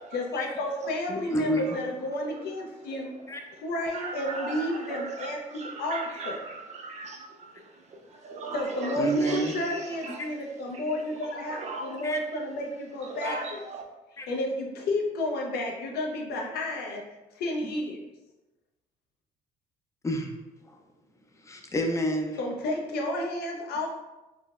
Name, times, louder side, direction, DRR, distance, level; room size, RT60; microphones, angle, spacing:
voice 1, 0.1-3.1 3.6-6.4 8.5-13.6 14.3-17.0 17.3-18.0 22.4-24.0, left 1 dB, 70° left, 0 dB, 0.6 m, -31 dB
voice 2, 1.1-1.6 3.3-3.4 9.0-9.5 10.2-10.3 12.0-12.2 13.2-13.3 14.2-14.3 20.0-20.3 20.7-20.8 21.4-22.4, right 1 dB, 20° left, 3 dB, 0.4 m, -29 dB
voice 3, 2.9-3.3 3.9-10.3 10.7-10.9 11.3-12.1 13.0-13.9, right 3 dB, 45° right, 1 dB, 0.5 m, -39 dB
3.7 x 2.1 x 2.4 m, 1.0 s
cardioid pair, 110°, 17 cm